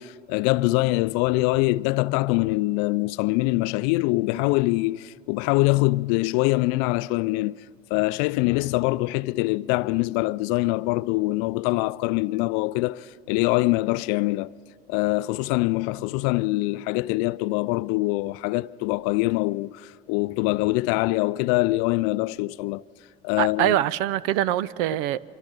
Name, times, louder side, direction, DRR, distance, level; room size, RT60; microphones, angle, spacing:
voice 1, 0.0-7.6 7.9-14.5 14.9-22.8 23.2-23.8, left 21 dB, 50° left, 0.5 m, -24 dB
voice 2, 23.4-25.2, right 13 dB, 55° right, 0.6 m, -24 dB
25.0 x 23.5 x 5.3 m
hypercardioid pair, 80°, 32 cm